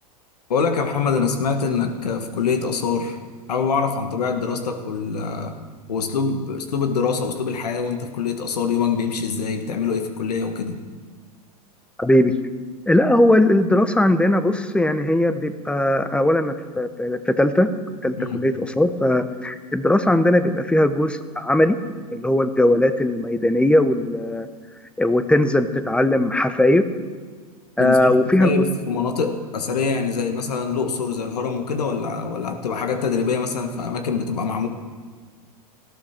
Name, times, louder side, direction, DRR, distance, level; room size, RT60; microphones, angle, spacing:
voice 1, 0.5-3.2 3.5-5.5 5.9-10.8 18.1-18.4 27.8-34.7, left 5 dB, 85° left, 6 dB, 1.6 m, -24 dB
voice 2, 12.0-12.3 12.9-17.7 18.0-21.8 22.1-24.5 25.0-26.8 27.8-28.7, left 1 dB, 5° left, 11 dB, 0.9 m, -19 dB
19.5 x 14.0 x 4.4 m, 1.5 s
hypercardioid pair, 105°, 20 cm